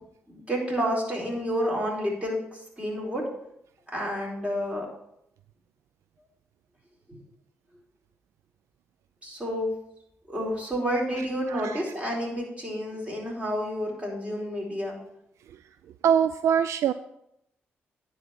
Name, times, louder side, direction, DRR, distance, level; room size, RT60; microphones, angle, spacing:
voice 1, 0.3-2.4 2.8-3.3 3.9-4.9 7.1-7.2 9.2-9.7 10.3-15.0, equal, 25° right, -2 dB, 4.3 m, -29 dB
voice 2, 11.5-11.8 16.0-16.9, right 8 dB, 75° right, 13 dB, 0.3 m, -23 dB
9.7 x 4.3 x 7.0 m, 0.78 s
supercardioid pair, 45°, 5 cm